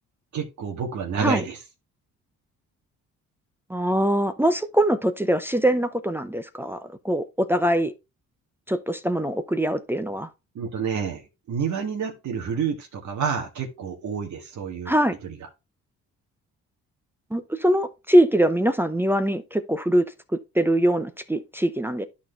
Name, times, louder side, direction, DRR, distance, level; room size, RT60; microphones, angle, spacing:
voice 1, 0.3-1.6 10.6-14.9 15.2-15.4, right 6 dB, 70° right, 1.8 m, -29 dB
voice 2, 3.7-7.9 8.7-10.3 14.9-15.2 17.3-22.0, right 1 dB, 5° right, 0.7 m, -23 dB
11.5 x 4.4 x 3.3 m
cardioid pair, 90°, 30 cm